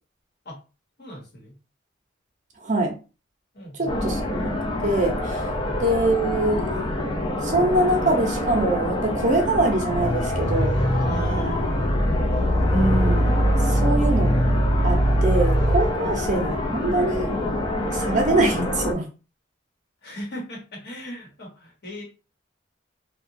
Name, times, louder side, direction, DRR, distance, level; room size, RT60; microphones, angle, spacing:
voice 1, 1.0-1.5 3.5-4.2 5.6-5.8 10.9-12.1 13.7-14.1 16.0-16.2 18.1-18.2 20.0-22.0, equal, 55° left, -1 dB, 1.1 m, -37 dB
voice 2, 2.6-3.0 3.7-4.5 4.8-5.4 5.8-6.9 7.4-10.8 12.7-13.4 13.6-14.3 14.8-17.4 17.9-19.1, right 2 dB, 40° right, 2 dB, 0.6 m, -23 dB
sound 1, 3.9-18.9, left 1 dB, 25° left, 0.5 m, -27 dB
sound 2, 9.9-15.9, equal, 75° left, 0.7 m, -22 dB
2.9 x 2.2 x 2.6 m, 0.32 s
head